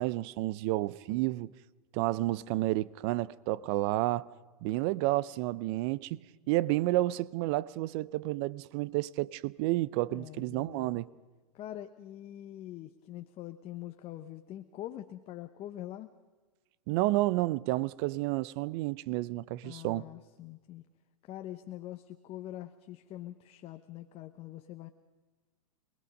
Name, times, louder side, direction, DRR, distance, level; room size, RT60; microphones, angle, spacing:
voice 1, 0.0-1.5 1.9-4.3 4.6-6.2 6.5-11.1 16.9-20.1, right 18 dB, 45° right, 0.7 m, -30 dB
voice 2, 10.1-11.0 11.5-16.1 19.6-20.8 21.2-24.9, left 13 dB, 30° left, 0.9 m, -44 dB
26.5 x 20.0 x 5.3 m
hypercardioid pair, 120°, 19 cm